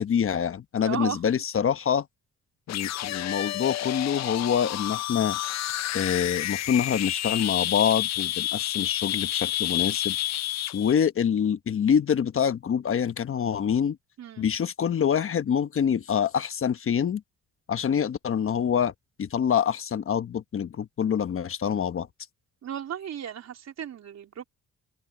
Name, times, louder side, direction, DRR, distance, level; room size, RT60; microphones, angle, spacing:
voice 1, 0.0-2.1 2.7-5.4 5.9-10.2 10.7-14.0 14.4-17.2 17.7-18.9 19.2-22.1, left 8 dB, 45° left, 1.0 m, -26 dB
voice 2, 0.8-1.2 14.2-14.5 22.6-24.4, right 9 dB, 60° right, 3.5 m, -35 dB
sound 1, 2.7-10.9, left 13 dB, 60° left, 0.6 m, -29 dB
open air
cardioid pair, 90°, 30 cm